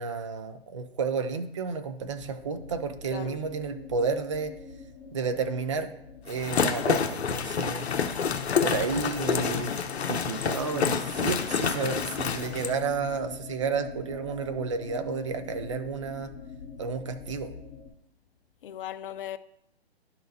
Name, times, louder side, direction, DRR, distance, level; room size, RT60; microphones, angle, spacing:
voice 1, 0.0-4.5 5.1-5.9 6.3-7.9 8.6-9.8 10.1-16.3 16.8-17.5, right 5 dB, 30° right, 0.4 m, -31 dB
sound 1, 2.0-17.9, left 6 dB, 10° left, 1.7 m, -42 dB
voice 2, 3.1-3.4 18.6-19.4, left 11 dB, 55° left, 0.5 m, -37 dB
sound 2, 6.3-12.7, left 6 dB, 75° left, 0.9 m, -28 dB
11.5 x 4.0 x 2.7 m
hypercardioid pair, 145°, 33 cm